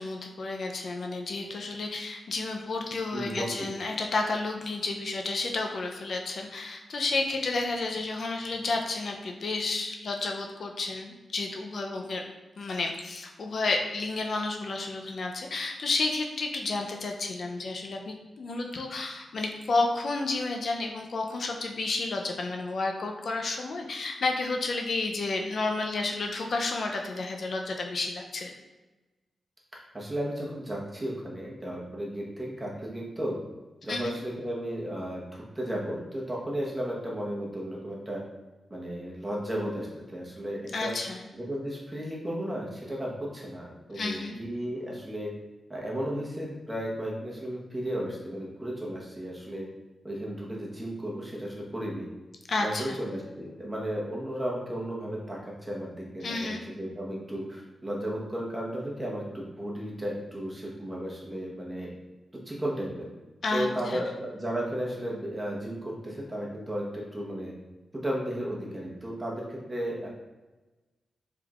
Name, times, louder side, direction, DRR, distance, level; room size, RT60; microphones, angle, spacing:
voice 1, 0.0-12.2 12.6-28.5 33.9-34.2 40.7-41.2 43.9-44.4 52.5-53.0 56.2-56.6 63.4-64.0, left 3 dB, 60° left, 2 dB, 0.5 m, -31 dB
voice 2, 3.1-3.7 29.9-33.4 33.8-38.2 38.7-40.9 41.3-45.3 45.7-49.7 50.0-52.1 52.6-61.9 62.5-63.1 63.5-67.5 68.0-70.1, equal, 15° right, -3 dB, 1.1 m, -34 dB
4.6 x 3.6 x 2.4 m, 1.2 s
cardioid pair, 85°, 0 cm